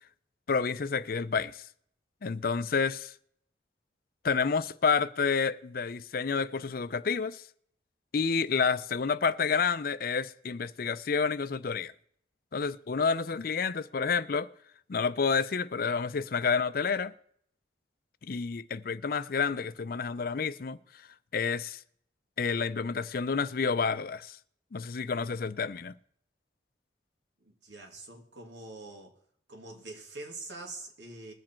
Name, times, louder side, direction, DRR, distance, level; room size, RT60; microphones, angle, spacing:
voice 1, 0.5-1.6 2.2-3.1 4.2-7.4 8.1-11.9 12.5-14.5 14.9-17.1 18.3-20.8 21.3-21.8 22.4-24.4 24.7-25.9, left 5 dB, 55° left, 0.5 m, -29 dB
voice 2, 27.4-29.2 29.5-31.3, right 2 dB, 90° right, 2.5 m, -44 dB
20.5 x 7.5 x 4.4 m
head